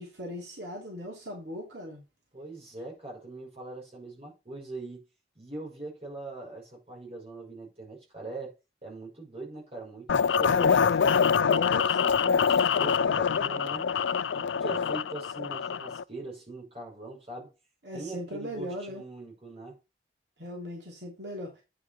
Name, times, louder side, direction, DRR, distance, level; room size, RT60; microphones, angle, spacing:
voice 1, 0.0-2.0 17.8-19.0 20.4-21.6, equal, 70° right, 2.9 m, -39 dB
voice 2, 2.3-5.0 5.4-8.5 8.8-13.9 14.3-17.5 17.9-19.8, right 2 dB, 35° right, 5.4 m, -42 dB
sound 1, 10.1-16.0, left 6 dB, 90° left, 0.4 m, -25 dB
9.6 x 5.2 x 4.2 m
head